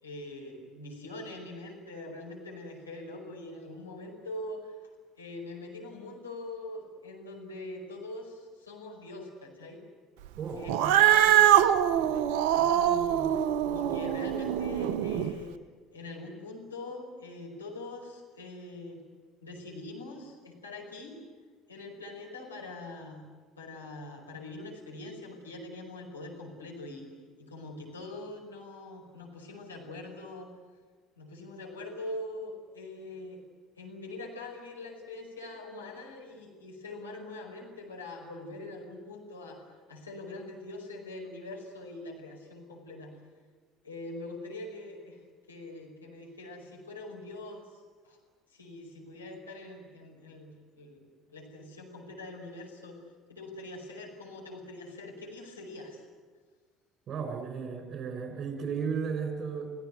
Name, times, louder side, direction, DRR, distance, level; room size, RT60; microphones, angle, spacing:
voice 1, 0.0-4.7 5.2-9.8 10.6-11.5 11.9-12.2 12.5-13.3 13.6-15.5 15.9-19.0 19.4-21.2 21.7-23.2 23.6-27.1 27.4-30.5 31.2-33.4 33.8-43.2 43.8-45.2 45.5-48.2 48.5-51.0 51.3-53.0 53.3-56.0, left 2 dB, 85° left, -1 dB, 5.2 m, -43 dB
voice 2, 10.4-10.9 57.1-59.7, right 6 dB, 40° right, 6 dB, 6.4 m, -34 dB
Cat, 10.7-15.3, right 11 dB, 65° right, 1.0 m, -23 dB
30.0 x 17.5 x 9.4 m, 1.5 s
figure-of-eight pair, 60°, 0 cm